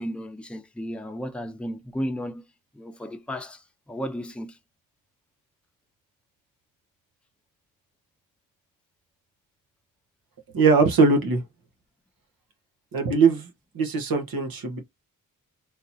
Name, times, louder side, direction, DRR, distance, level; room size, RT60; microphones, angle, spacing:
voice 1, 0.0-2.4 2.7-4.6, equal, 5° left, 0.6 m, -34 dB
voice 2, 10.5-11.4 12.9-13.5 13.7-14.8, right 4 dB, 85° right, 1.3 m, -20 dB
3.8 x 2.9 x 2.7 m
cardioid pair, 90°, 34 cm